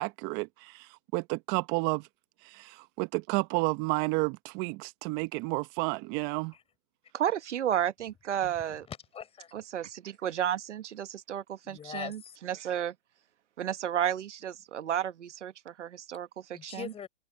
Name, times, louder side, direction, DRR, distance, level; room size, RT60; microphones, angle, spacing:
voice 1, 0.0-2.1 2.4-6.5, right 25 dB, 30° right, 1.1 m, -31 dB
voice 2, 7.1-8.9 9.5-12.9 13.6-16.9, right 10 dB, 70° right, 1.6 m, -32 dB
voice 3, 8.9-9.5 11.6-12.4 16.5-17.1, left 8 dB, 15° left, 4.9 m, -42 dB
hypercardioid pair, 130°, 37 cm